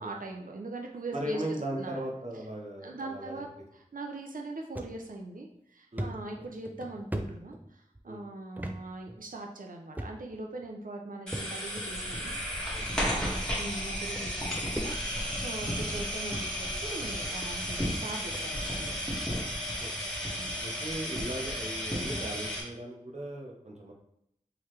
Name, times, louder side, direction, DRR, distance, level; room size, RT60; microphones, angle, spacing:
voice 1, 0.0-1.4 1.8-2.0 2.8-3.5 3.7-12.3 12.6-18.9 20.4-20.6, right 2 dB, 80° right, 1 dB, 0.6 m, -41 dB
voice 2, 1.1-3.5 5.9-6.1 8.0-8.2 12.7-13.4 19.8-19.9 20.6-23.9, right 1 dB, 55° right, -1 dB, 1.0 m, -38 dB
sound 1, 4.8-4.9 5.4-5.5 6.0-8.0 8.6-8.8 9.1-9.2 10.0-10.4 11.3-11.9 12.7-12.8 13.8-13.9 14.2-15.3 15.8-16.1 16.8-16.9 17.4-17.5 17.8-17.9 18.3-18.5, right 1 dB, 10° right, 0.5 m, -39 dB
sound 2, 11.3-22.6, equal, 5° left, 1.9 m, -33 dB
4.2 x 3.9 x 3.2 m, 0.75 s
wide cardioid pair, 40°, 14 cm